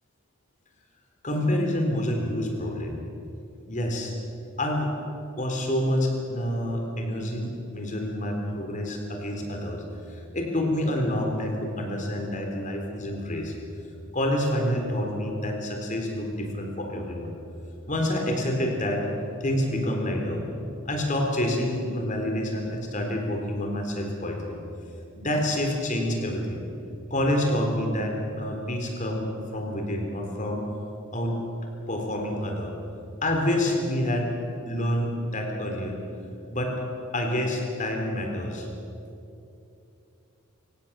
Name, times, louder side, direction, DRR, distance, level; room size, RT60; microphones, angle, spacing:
voice 1, 1.2-3.0 3.7-4.1 4.6-4.9 5.4-9.8 10.1-13.5 14.1-17.3 17.9-19.1 19.4-20.5 20.9-24.6 25.2-26.6 27.1-30.6 31.1-31.4 31.9-32.7 33.2-34.3 34.7-35.9 36.5-36.7 37.1-38.7, left 1 dB, 35° left, 2 dB, 3.8 m, -27 dB
25.5 x 16.5 x 7.5 m, 2.8 s
head